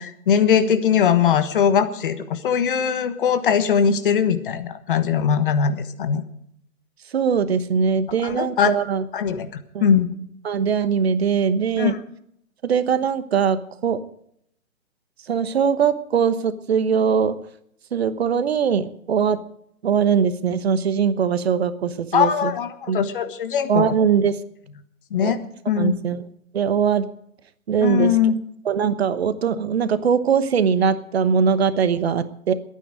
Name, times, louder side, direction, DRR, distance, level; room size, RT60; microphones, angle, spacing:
voice 1, 0.0-6.2 8.2-8.7 9.1-10.1 11.8-12.0 22.1-24.0 25.1-25.4 25.7-26.0 27.8-28.3, left 7 dB, 40° left, 10 dB, 1.3 m, -20 dB
voice 2, 7.1-9.0 9.7-9.9 10.4-11.9 12.6-13.6 13.8-14.0 15.3-17.3 17.9-19.4 19.8-22.5 22.9-23.0 23.7-24.4 25.2-25.3 25.8-26.2 26.5-27.1 27.7-28.1 28.6-32.5, right 7 dB, 45° right, 13 dB, 1.1 m, -21 dB
21.5 x 9.4 x 5.1 m, 0.71 s
figure-of-eight pair, 135°, 42 cm